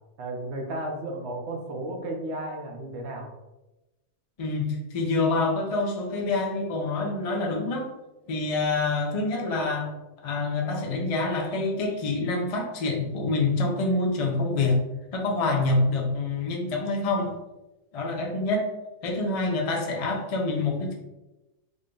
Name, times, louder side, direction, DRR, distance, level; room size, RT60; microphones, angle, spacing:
voice 1, 0.2-3.3, right 1 dB, 60° right, 1 dB, 0.9 m, -33 dB
voice 2, 4.4-7.9 8.3-9.9 10.2-14.8 15.1-17.3 17.9-18.7 19.0-20.9, left 3 dB, 55° left, 0 dB, 0.4 m, -26 dB
3.8 x 2.2 x 3.7 m, 1.0 s
omnidirectional pair, 1.5 m